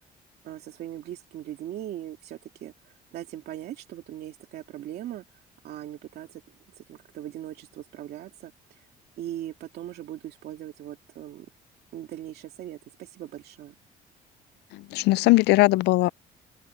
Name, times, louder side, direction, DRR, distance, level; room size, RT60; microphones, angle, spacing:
voice 1, 0.4-2.7 3.1-5.2 5.6-6.4 6.8-8.8 9.2-11.5 11.9-13.7, right 12 dB, 70° right, 2.7 m, -39 dB
voice 2, 14.7-16.1, left 20 dB, 80° left, 0.4 m, -20 dB
open air
cardioid pair, 110°, 17 cm